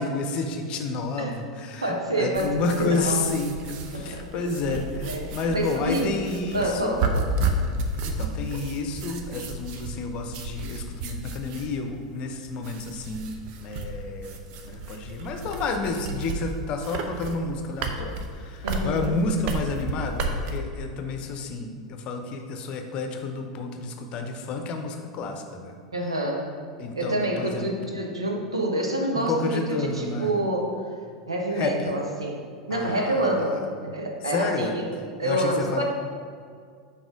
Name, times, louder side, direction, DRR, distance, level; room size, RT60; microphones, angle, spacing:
voice 1, 0.0-7.0 8.0-14.4 14.6-25.8 26.8-27.7 29.1-30.3 31.5-31.9 32.7-33.6 34.3-34.7 35.2-35.8, left 3 dB, 40° left, 5 dB, 0.7 m, -30 dB
voice 2, 1.8-3.2 3.9-6.1 6.5-7.4 18.6-19.1 25.9-26.5 27.0-30.7 31.3-32.4 32.7-34.9 35.2-35.8, right 1 dB, 80° right, 1 dB, 1.0 m, -28 dB
sound 1, 2.3-20.6, right 2 dB, 45° right, 0.7 m, -32 dB
6.1 x 4.2 x 5.1 m, 2.1 s
figure-of-eight pair, 85°, 3 cm